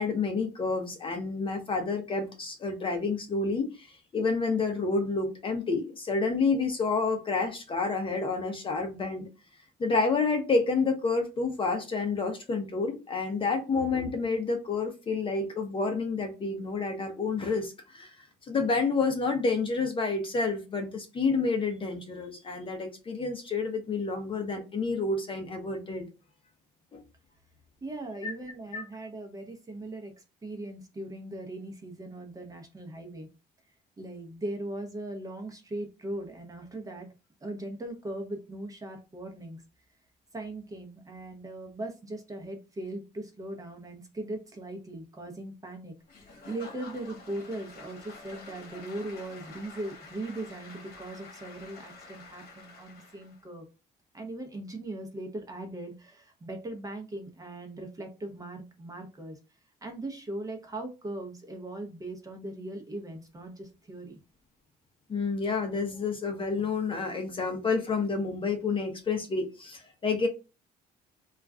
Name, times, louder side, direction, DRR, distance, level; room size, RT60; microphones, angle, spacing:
voice 1, 0.0-3.9 4.1-9.3 9.8-26.0 26.9-27.0 28.2-28.3 28.7-28.8 65.1-70.3, left 4 dB, 30° left, 0.6 m, -29 dB
voice 2, 27.8-33.3 34.0-37.1 37.4-39.6 40.3-53.7 54.1-59.4 59.8-64.2, right 1 dB, 20° right, 0.7 m, -39 dB
Applause / Crowd, 46.1-53.4, left 3 dB, 65° left, 1.0 m, -48 dB
2.3 x 2.2 x 3.6 m
cardioid pair, 110°, 17 cm